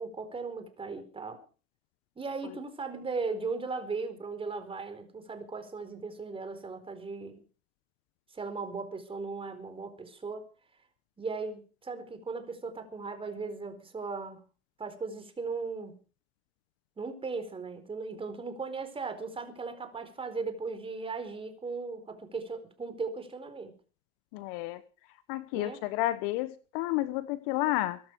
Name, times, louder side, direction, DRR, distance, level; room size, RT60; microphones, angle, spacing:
voice 1, 0.0-1.4 2.2-7.4 8.3-10.5 11.2-14.4 14.8-16.0 17.0-23.7 25.5-25.8, right 4 dB, 15° right, 4.3 m, -37 dB
voice 2, 24.3-24.8 25.3-28.0, left 16 dB, 50° left, 1.2 m, -31 dB
23.0 x 12.0 x 4.7 m
hypercardioid pair, 100°, 34 cm